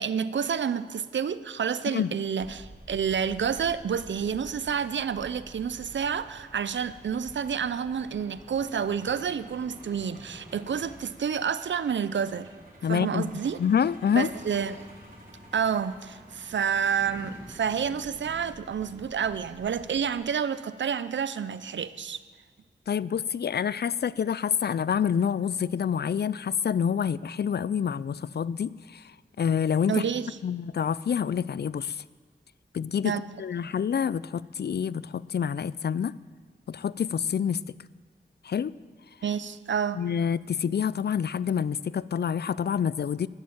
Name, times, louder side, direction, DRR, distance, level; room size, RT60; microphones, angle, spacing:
voice 1, 0.0-12.5 12.9-13.6 14.1-14.8 15.5-22.2 29.9-30.4 33.0-33.3 39.2-40.0, right 7 dB, 85° right, 15 dB, 0.5 m, -29 dB
Truck, 2.4-20.2, right 1 dB, 45° right, 4.5 m, -49 dB
voice 2, 12.8-13.3 13.6-14.3 22.9-29.0 29.4-30.0 30.4-32.0 32.7-33.1 33.4-36.1 36.7-37.6 38.4-38.7 39.9-43.3, left 7 dB, 65° left, 19 dB, 0.4 m, -27 dB
13.5 x 10.5 x 7.3 m, 1.4 s
wide cardioid pair, 55°, 19 cm